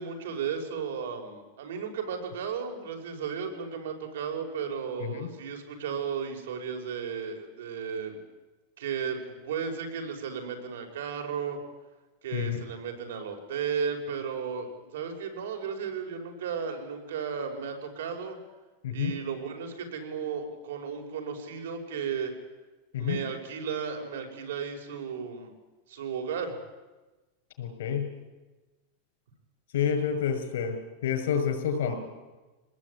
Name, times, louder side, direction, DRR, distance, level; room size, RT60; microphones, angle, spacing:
voice 1, 0.0-8.2 8.8-11.6 12.2-18.4 18.9-22.3 23.0-25.5 25.9-26.5, right 6 dB, 90° right, 4 dB, 5.7 m, -34 dB
voice 2, 27.6-28.1 29.7-30.8 31.0-31.9, left 8 dB, 80° left, 7 dB, 6.1 m, -28 dB
24.5 x 19.0 x 9.8 m, 1.2 s
supercardioid pair, 165°, 0 cm